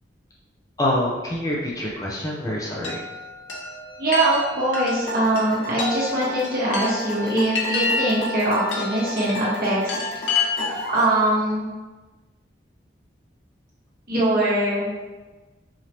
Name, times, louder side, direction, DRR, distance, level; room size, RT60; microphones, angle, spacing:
voice 1, 0.8-3.0, left 1 dB, 20° left, -4 dB, 0.5 m, -26 dB
Chime, 2.8-11.0, left 3 dB, 85° left, 0.8 m, -29 dB
voice 2, 4.0-10.1 10.9-11.7 14.1-14.9, right 1 dB, 50° right, -7 dB, 1.4 m, -22 dB
sound 1, 5.1-11.1, right 1 dB, 60° left, 1.2 m, -32 dB
4.9 x 2.8 x 2.9 m, 1.2 s
head